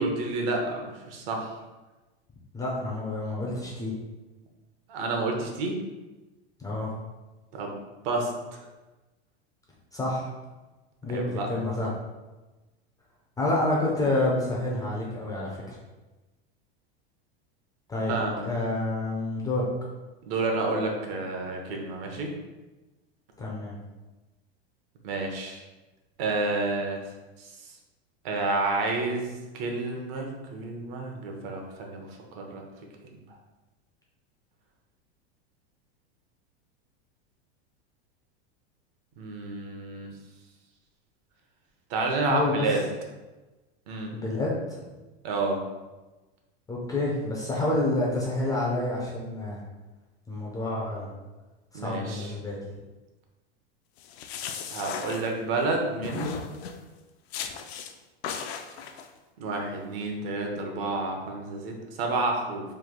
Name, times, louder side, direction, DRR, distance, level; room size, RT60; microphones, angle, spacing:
voice 1, 0.0-1.5 4.9-5.8 7.5-7.7 8.0-8.7 11.1-11.5 18.1-18.4 20.3-22.3 25.0-25.6 26.2-27.0 27.4-27.7 28.2-32.1 32.3-32.6 33.0-33.2 39.2-40.1 41.9-42.8 43.9-44.2 45.2-45.6 51.7-52.3 54.7-56.5 59.4-62.6, right 3 dB, 60° right, 1 dB, 0.8 m, -30 dB
voice 2, 2.5-3.9 6.6-6.9 9.9-10.3 11.0-11.9 13.4-15.8 17.9-18.1 18.4-19.7 23.4-23.8 42.3-42.7 44.1-44.6 46.7-49.6 50.3-51.1 51.7-52.6, left 2 dB, 10° left, -4 dB, 0.4 m, -28 dB
sound 1, 54.0-55.7 56.0-56.8 57.3-57.9 58.2-59.1, left 7 dB, 75° left, 0.5 m, -36 dB
3.2 x 2.3 x 3.6 m, 1.2 s
supercardioid pair, 140°, 32 cm